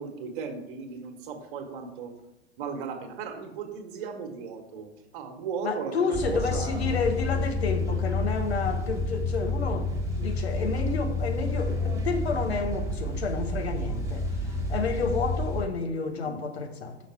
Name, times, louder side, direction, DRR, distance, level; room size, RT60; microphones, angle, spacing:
voice 1, 0.0-2.1 2.6-7.4 16.2-16.4, right 6 dB, 50° right, 1.5 m, -37 dB
voice 2, 5.6-9.9 10.2-17.0, left 4 dB, 70° left, 1.1 m, -30 dB
sound 1, 6.1-15.6, left 2 dB, 10° right, 1.3 m, -29 dB
6.3 x 6.1 x 4.4 m
figure-of-eight pair, 85°, 33 cm